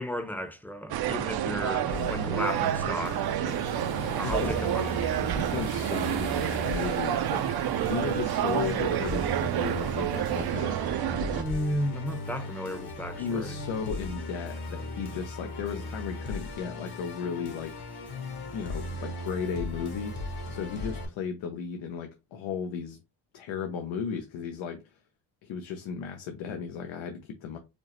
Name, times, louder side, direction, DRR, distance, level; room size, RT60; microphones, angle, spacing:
voice 1, 0.0-3.6 4.2-5.1 11.3-13.5, left 1 dB, 5° left, 0.6 m, -34 dB
sound 1, 0.9-11.4, right 12 dB, 60° right, 0.5 m, -29 dB
Musical instrument, 1.9-21.1, left 2 dB, 60° left, 1.4 m, -37 dB
sound 2, 3.5-10.5, right 7 dB, 85° right, 0.9 m, -42 dB
voice 2, 4.2-4.9 5.3-10.8 13.2-17.7 18.5-20.2 20.5-23.0 23.3-25.0 25.4-27.6, left 6 dB, 85° left, 0.7 m, -35 dB
5.1 x 2.0 x 2.9 m
cardioid pair, 80°, 45 cm